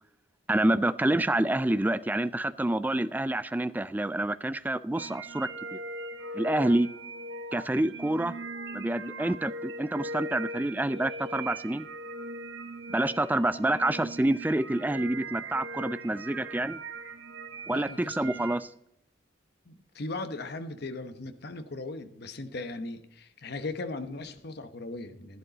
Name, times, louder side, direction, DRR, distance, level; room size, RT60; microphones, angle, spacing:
voice 1, 0.5-5.8 6.3-6.9 7.5-8.3 8.7-11.9 12.9-16.8 17.7-18.7, right 1 dB, 10° right, 15 dB, 0.3 m, -27 dB
sound 1, 4.9-18.6, right 2 dB, 65° right, 1.2 m, -40 dB
voice 2, 17.7-18.5 19.7-25.4, left 2 dB, 55° left, 9 dB, 1.0 m, -38 dB
12.0 x 11.0 x 4.0 m, 0.80 s
head